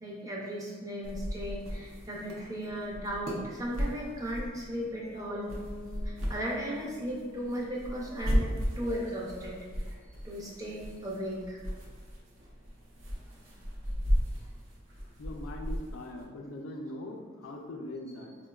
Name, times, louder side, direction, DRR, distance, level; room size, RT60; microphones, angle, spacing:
voice 1, 0.0-5.5 6.0-9.6 9.9-10.0 10.2-11.6 14.4-14.5, equal, 15° right, -4 dB, 0.4 m, -36 dB
sound 1, 1.0-16.2, equal, 70° right, 0.5 m, -36 dB
Bass guitar, 5.2-9.0, left 2 dB, 40° right, 0.9 m, -47 dB
voice 2, 15.2-18.4, left 1 dB, 85° left, 2 dB, 0.4 m, -41 dB
4.4 x 2.1 x 2.2 m, 1.5 s
head